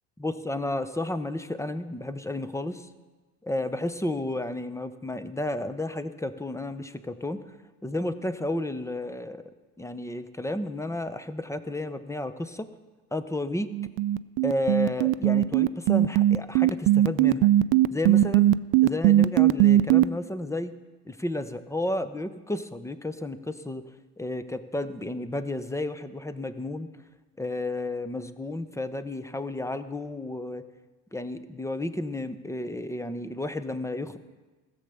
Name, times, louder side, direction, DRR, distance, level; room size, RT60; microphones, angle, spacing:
voice 1, 0.2-2.9 3.4-7.4 7.8-9.4 9.8-12.7 13.1-13.7 14.4-17.5 17.9-18.6 18.8-20.7 21.0-23.9 24.2-26.9 27.4-30.7 31.1-34.2, left 1 dB, 5° left, 11 dB, 0.8 m, -32 dB
sound 1, 13.7-20.0, right 14 dB, 50° right, 0.5 m, -19 dB
16.0 x 7.2 x 6.8 m, 1.2 s
hypercardioid pair, 75°, 48 cm